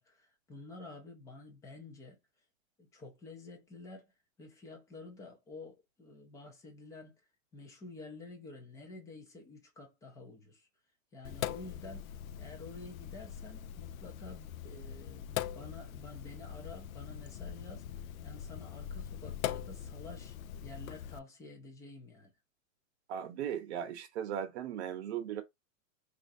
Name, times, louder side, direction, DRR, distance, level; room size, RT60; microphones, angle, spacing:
voice 1, 0.0-2.2 2.8-4.1 4.4-7.1 7.5-10.7 11.1-12.1 12.4-17.9 18.2-22.3, left 2 dB, 10° left, 0.5 m, -50 dB
Sink (filling or washing), 11.2-21.2, left 10 dB, 80° left, 0.6 m, -42 dB
voice 2, 23.1-25.4, right 9 dB, 55° right, 0.9 m, -37 dB
4.4 x 2.5 x 2.6 m
supercardioid pair, 160°, 41 cm